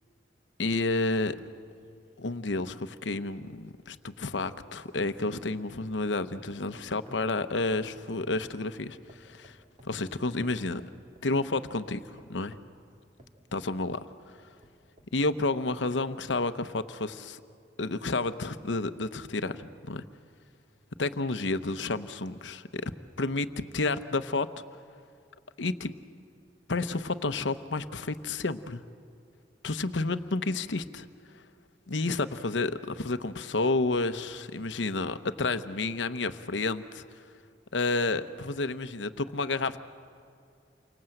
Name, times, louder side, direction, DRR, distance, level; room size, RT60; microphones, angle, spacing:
voice 1, 0.6-1.4 2.2-9.6 9.8-10.8 11.2-12.6 13.5-14.0 15.1-17.4 17.8-20.1 21.0-22.9 23.2-24.5 25.6-25.9 26.7-28.8 29.6-30.8 31.3-31.4 31.9-37.0 37.7-39.8, left 3 dB, 85° left, 11 dB, 0.9 m, -30 dB
sound 1, 1.4-4.7 5.0-6.0 6.3-8.7 9.1-10.0 10.4-11.3 11.8-14.1 14.6-15.5 16.1-16.2, right 1 dB, 40° right, 2.3 m, -57 dB
29.0 x 25.0 x 7.9 m, 2.4 s
head